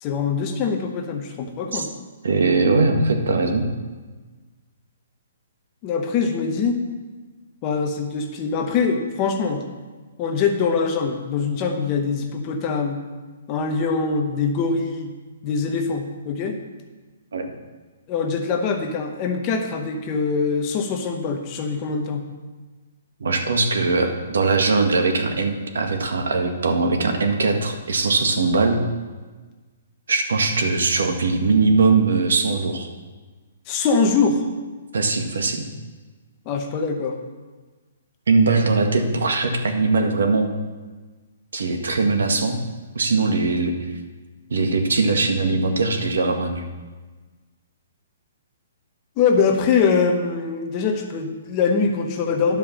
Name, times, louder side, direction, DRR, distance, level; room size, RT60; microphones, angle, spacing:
voice 1, 0.0-1.9 5.8-6.8 7.6-9.6 10.2-13.0 13.5-15.1 15.4-16.6 18.1-22.3 33.7-34.4 36.5-37.2 49.2-52.6, left 5 dB, 20° left, 4 dB, 0.7 m, -23 dB
voice 2, 2.2-3.7 17.3-17.5 23.2-28.8 30.1-32.9 34.9-35.7 38.3-40.5 41.5-42.6 42.9-43.9 44.5-46.6, right 3 dB, 90° right, 5 dB, 1.5 m, -20 dB
10.5 x 5.1 x 7.1 m, 1.3 s
hypercardioid pair, 180°, 0 cm